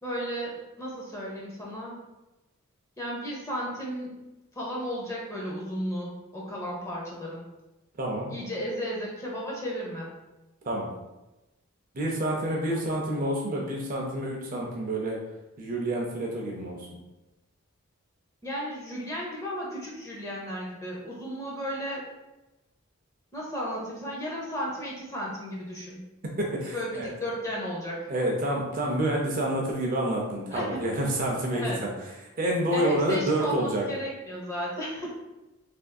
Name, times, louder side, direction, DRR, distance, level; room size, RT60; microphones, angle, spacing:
voice 1, 0.0-2.0 3.0-4.2 4.5-7.4 8.3-10.1 18.4-22.0 23.3-26.0 26.7-28.1 30.5-30.8 31.5-31.8 32.7-35.1, equal, 15° left, -4 dB, 0.6 m, -34 dB
voice 2, 8.0-8.3 10.7-10.9 11.9-15.2 15.6-16.8 26.4-27.1 28.1-31.9 32.4-33.9, right 1 dB, 40° right, -1 dB, 0.5 m, -28 dB
3.4 x 2.5 x 2.3 m, 1.0 s
head